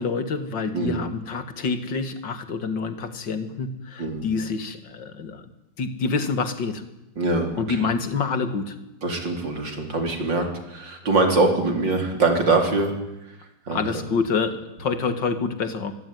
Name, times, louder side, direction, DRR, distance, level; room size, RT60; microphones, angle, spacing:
voice 1, 0.0-5.4 5.8-6.8 7.6-8.7 13.7-15.9, left 4 dB, 80° left, 9 dB, 2.7 m, -27 dB
voice 2, 7.2-7.8 9.0-12.9 13.7-13.8, right 3 dB, 80° right, 4 dB, 4.6 m, -23 dB
24.5 x 21.5 x 9.5 m, 0.94 s
omnidirectional pair, 2.0 m